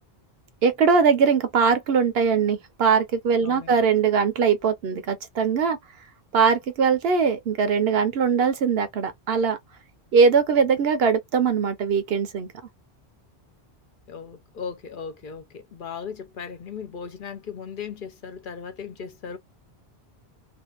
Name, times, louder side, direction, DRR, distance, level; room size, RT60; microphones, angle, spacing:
voice 1, 0.6-5.8 6.3-9.6 10.1-12.5, right 6 dB, 75° right, 0.9 m, -21 dB
voice 2, 3.4-3.8 14.1-19.4, left 6 dB, 60° left, 0.8 m, -37 dB
2.6 x 2.4 x 2.3 m
omnidirectional pair, 1.1 m